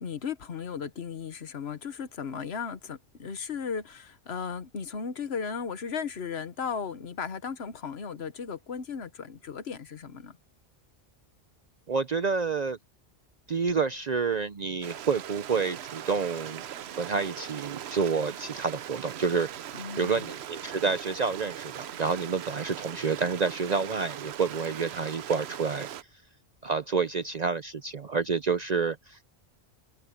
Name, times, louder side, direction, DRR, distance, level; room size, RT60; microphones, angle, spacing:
voice 1, 0.0-10.4 19.8-20.3, left 6 dB, 85° left, 1.4 m, -36 dB
voice 2, 11.9-12.8 13.5-16.6 16.9-19.5 20.0-25.9 26.6-29.2, right 5 dB, 45° right, 0.7 m, -29 dB
Stream, 14.8-26.0, right 10 dB, 90° right, 0.9 m, -40 dB
omnidirectional pair, 1.0 m